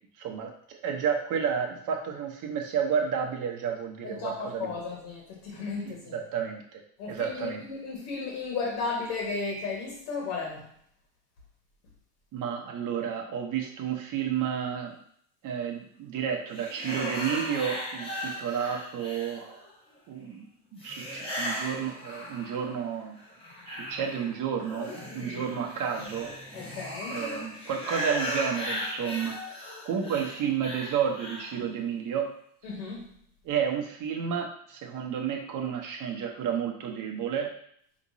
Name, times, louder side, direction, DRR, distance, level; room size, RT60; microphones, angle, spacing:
voice 1, 0.2-0.5 0.8-4.7 6.1-6.8 7.1-7.6 12.3-15.0 15.4-19.6 20.1-20.5 20.7-23.2 23.7-26.3 27.1-32.3 33.4-37.5, right 7 dB, 45° right, 2 dB, 1.0 m, -31 dB
voice 2, 4.0-6.1 7.0-10.7 26.5-27.2 32.6-33.1, left 4 dB, 70° left, -3 dB, 1.6 m, -34 dB
sound 1, 16.5-19.7 20.8-22.8 23.2-31.6, equal, 10° left, 1.2 m, -37 dB
5.1 x 3.1 x 2.7 m, 0.64 s
supercardioid pair, 110°, 44 cm